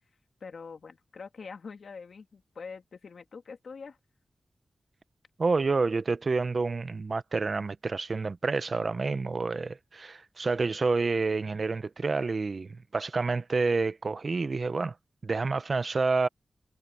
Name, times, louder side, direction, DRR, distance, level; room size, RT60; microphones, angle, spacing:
voice 1, 0.4-4.0, left 5 dB, 80° left, 2.7 m, -44 dB
voice 2, 5.4-14.9 15.2-16.3, right 4 dB, 55° right, 0.8 m, -28 dB
wide cardioid pair, 80°, 0 cm